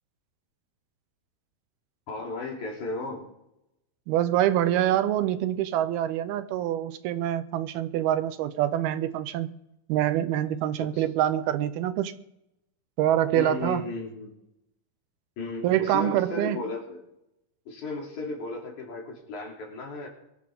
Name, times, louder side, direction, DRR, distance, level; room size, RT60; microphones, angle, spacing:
voice 1, 2.1-3.3 10.8-11.0 13.3-14.4 15.4-17.0 17.7-20.1, left 3 dB, 50° left, 4.3 m, -35 dB
voice 2, 4.1-9.5 9.9-12.1 13.0-13.9 15.6-16.6, right 12 dB, 80° right, 2.7 m, -25 dB
23.5 x 13.5 x 3.7 m
omnidirectional pair, 4.5 m